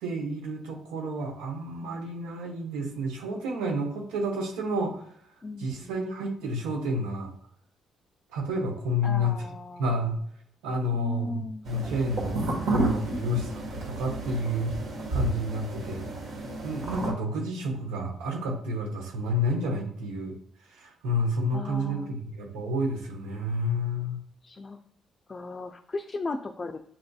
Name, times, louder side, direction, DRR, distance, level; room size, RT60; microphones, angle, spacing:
voice 1, 0.0-5.0 5.6-7.3 8.3-9.4 9.8-10.2 10.6-14.7 15.1-16.1 16.6-20.3 20.7-24.2, equal, 90° right, 1 dB, 0.9 m, -30 dB
voice 2, 5.4-6.1 9.0-10.1 10.9-11.9 13.1-13.3 21.5-22.3 24.4-24.8 25.3-26.8, left 3 dB, 35° left, 5 dB, 0.4 m, -37 dB
sound 1, 11.7-17.1, right 2 dB, 75° right, 1.3 m, -31 dB
7.4 x 2.6 x 2.3 m, 0.66 s
supercardioid pair, 70°, 0 cm